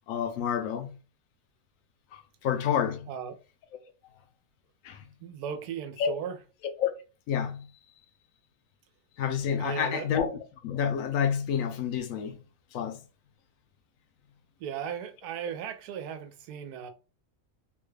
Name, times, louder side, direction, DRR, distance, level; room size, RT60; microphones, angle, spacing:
voice 1, 0.1-1.0 2.1-3.1 3.7-4.2 4.8-5.0 6.0-6.1 6.8-6.9 7.3-7.7 9.2-10.3 10.6-12.4 12.7-13.0, left 8 dB, 70° left, 0.9 m, -29 dB
voice 2, 5.2-6.4 9.6-10.1 14.6-16.9, right 8 dB, 85° right, 1.1 m, -37 dB
3.6 x 2.2 x 3.2 m
omnidirectional pair, 1.6 m